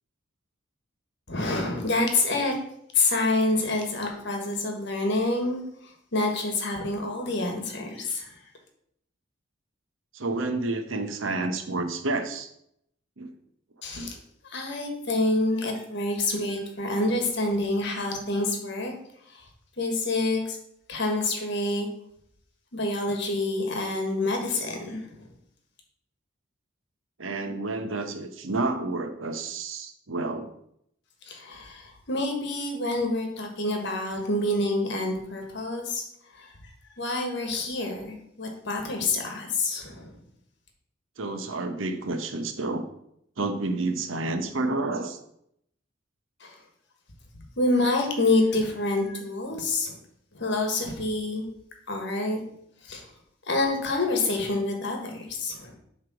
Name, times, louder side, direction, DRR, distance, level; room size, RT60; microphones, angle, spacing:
voice 1, 1.3-2.6 2.9-8.4 13.8-14.2 14.4-18.9 19.3-19.4 19.8-20.6 20.9-21.9 22.7-25.3 31.2-36.0 36.3-36.5 37.0-40.1 46.4-46.6 47.6-50.0 50.3-51.4 51.9-52.4 52.8-53.1 53.5-55.8, left 2 dB, 60° left, 3 dB, 1.5 m, -27 dB
voice 2, 10.1-12.5 13.2-13.3 13.9-14.1 27.2-30.5 41.2-42.8 43.4-45.2, right 2 dB, 80° right, 7 dB, 0.9 m, -30 dB
7.6 x 3.4 x 6.2 m, 0.73 s
head